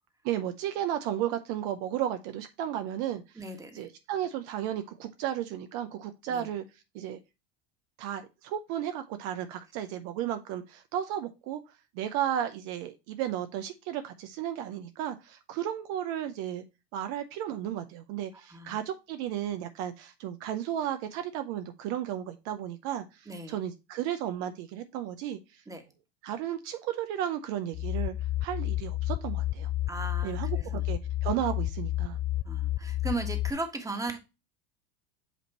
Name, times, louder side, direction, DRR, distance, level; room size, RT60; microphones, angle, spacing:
voice 1, 0.2-3.2 3.7-6.6 6.9-7.2 8.0-11.6 11.9-16.6 16.9-25.6 26.2-28.1 28.4-29.7 30.2-32.2, right 11 dB, 60° right, 8 dB, 0.7 m, -34 dB
voice 2, 3.4-3.9 6.3-6.5 18.3-18.8 23.3-23.6 25.7-25.8 29.9-30.8 32.4-34.2, right 2 dB, 10° right, 5 dB, 1.4 m, -37 dB
sound 1, 27.7-33.5, left 14 dB, 30° left, 0.5 m, -31 dB
8.1 x 2.9 x 4.1 m, 0.26 s
hypercardioid pair, 90°, 31 cm